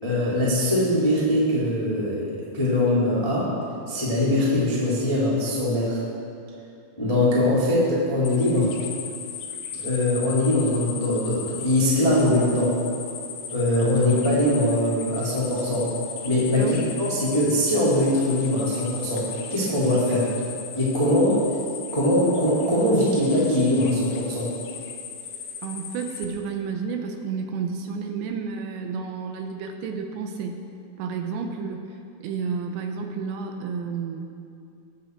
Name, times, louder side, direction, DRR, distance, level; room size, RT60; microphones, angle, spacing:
voice 1, 0.0-3.5 3.9-6.0 7.0-8.7 9.8-12.8 13.5-15.9 16.2-20.3 20.7-21.4 21.9-24.5, left 1 dB, 15° left, -8 dB, 0.9 m, -22 dB
sound 1, 8.2-26.3, left 7 dB, 75° left, 2.3 m, -37 dB
voice 2, 25.6-30.6 31.0-34.2, right 5 dB, 80° right, 4 dB, 2.9 m, -31 dB
20.0 x 7.0 x 4.6 m, 2.5 s
omnidirectional pair, 5.5 m